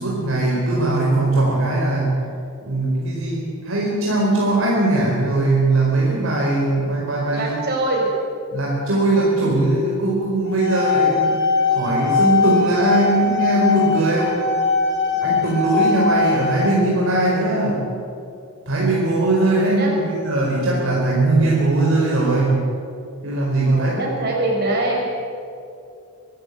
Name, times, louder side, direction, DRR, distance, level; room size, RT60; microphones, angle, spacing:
voice 1, 0.0-2.2 2.6-7.6 8.5-11.4 11.7-14.4 15.2-17.8 18.7-22.7 23.2-23.9, right 2 dB, 65° right, -4 dB, 4.6 m, -20 dB
voice 2, 7.3-8.1 19.4-19.9 23.7-25.1, right 2 dB, 50° right, -1 dB, 6.5 m, -23 dB
sound 1, 10.5-16.7, left 4 dB, 55° left, 4.5 m, -20 dB
24.5 x 14.0 x 9.6 m, 2.5 s
head